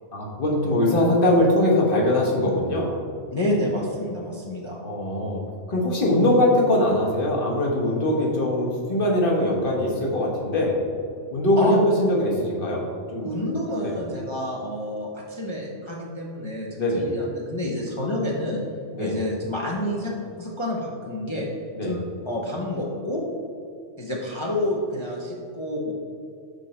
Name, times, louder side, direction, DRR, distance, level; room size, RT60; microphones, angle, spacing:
voice 1, 0.1-3.0 4.8-5.4 5.7-10.8 11.3-12.8 13.1-13.3 13.8-13.9 16.8-17.1 18.9-19.1 21.7-21.9, left 1 dB, 45° left, -2 dB, 1.4 m, -22 dB
voice 2, 3.3-4.8 11.6-11.8 13.2-18.6 19.0-20.1 20.4-21.5 21.8-22.0 22.2-23.2 24.0-25.9, left 1 dB, 25° left, -4 dB, 0.8 m, -28 dB
6.5 x 5.4 x 4.3 m, 2.4 s
omnidirectional pair, 1.3 m